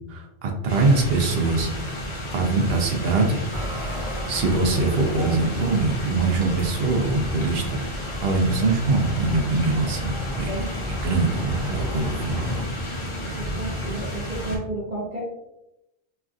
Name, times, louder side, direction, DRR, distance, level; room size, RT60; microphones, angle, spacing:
voice 1, 0.1-1.7 2.3-3.4 3.9-7.8 8.2-10.5 10.9-12.4, right 3 dB, 75° right, 2 dB, 0.8 m, -23 dB
sound 1, 0.7-14.6, equal, 35° left, 0.6 m, -32 dB
sound 2, 3.5-12.6, left 1 dB, 30° right, 0.5 m, -35 dB
voice 2, 13.2-15.2, right 2 dB, 45° right, -8 dB, 0.9 m, -32 dB
3.2 x 2.3 x 2.5 m, 0.86 s
omnidirectional pair, 1.1 m